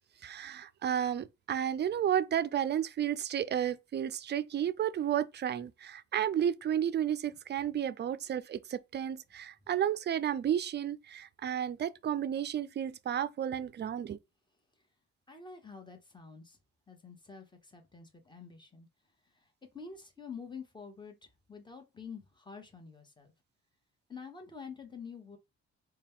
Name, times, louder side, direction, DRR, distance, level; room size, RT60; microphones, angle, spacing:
voice 1, 0.2-14.2, right 10 dB, 35° right, 0.4 m, -32 dB
voice 2, 15.3-16.6 16.9-18.9 19.3-19.5 19.7-23.3 24.1-25.4, left 5 dB, 15° left, 1.1 m, -48 dB
4.1 x 2.3 x 3.6 m
cardioid pair, 90°, 30 cm